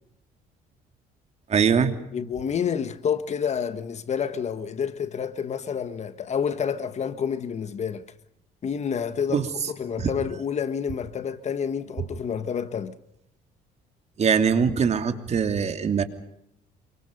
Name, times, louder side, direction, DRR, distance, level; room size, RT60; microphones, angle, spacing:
voice 1, 1.5-1.9 9.3-9.5 10.0-10.1 14.2-16.0, right 6 dB, 40° right, 3.0 m, -22 dB
voice 2, 2.1-8.1 8.6-13.0, left 7 dB, 40° left, 1.6 m, -29 dB
28.5 x 24.5 x 5.4 m
cardioid pair, 110°, 17 cm